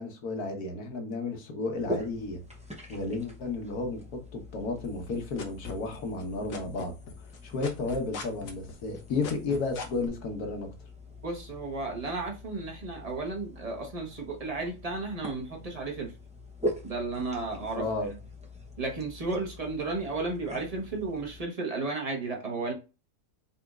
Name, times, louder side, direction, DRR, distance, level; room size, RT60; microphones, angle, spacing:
voice 1, 0.0-2.4 2.9-6.9 7.4-10.7 17.7-18.1, left 3 dB, 75° left, 1.6 m, -33 dB
sound 1, 1.7-21.4, left 1 dB, 10° right, 0.4 m, -42 dB
sound 2, 4.8-6.2 6.5-10.1, left 4 dB, 90° left, 1.5 m, -38 dB
voice 2, 11.2-16.1 16.8-17.9 18.8-22.7, right 3 dB, 25° right, 1.1 m, -33 dB
4.2 x 4.1 x 2.4 m
omnidirectional pair, 1.6 m